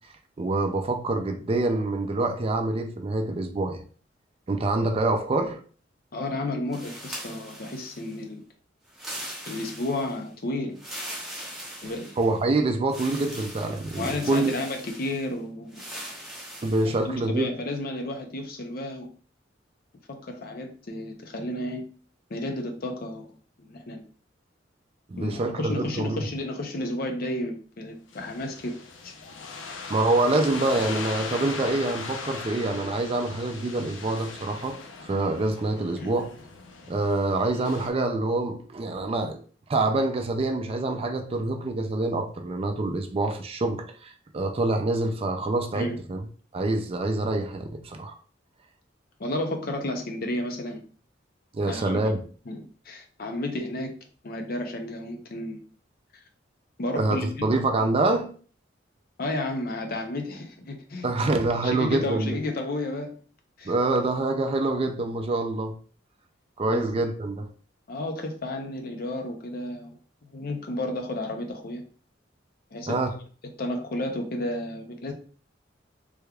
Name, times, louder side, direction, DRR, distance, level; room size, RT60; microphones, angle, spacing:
voice 1, 0.4-3.8 4.5-5.6 11.8-11.9 12.2-14.6 16.6-17.5 25.1-26.2 29.9-36.4 36.9-39.4 39.7-46.3 46.5-48.2 51.5-52.2 57.0-58.4 61.0-62.4 63.6-65.8 66.6-67.5 72.9-73.2, right 2 dB, 30° right, 0.4 m, -26 dB
voice 2, 6.1-8.4 9.2-10.8 11.8-12.2 13.9-15.8 16.8-19.1 20.1-21.8 22.3-23.4 23.7-24.0 25.2-28.7 29.0-29.1 36.0-36.1 45.7-46.0 49.2-50.8 51.7-52.0 52.5-53.9 54.2-55.6 56.8-57.6 59.2-61.1 61.6-63.2 63.6-63.7 66.7-66.8 67.9-71.8 72.7-73.0 73.6-75.1, left 1 dB, 50° left, 0.6 m, -32 dB
sound 1, 6.7-8.2 8.9-10.2 10.8-12.4 12.9-15.3 15.7-17.0, equal, ahead, 0.9 m, -40 dB
sound 2, 28.1-37.9, left 4 dB, 90° left, 0.6 m, -39 dB
3.4 x 3.3 x 2.3 m
head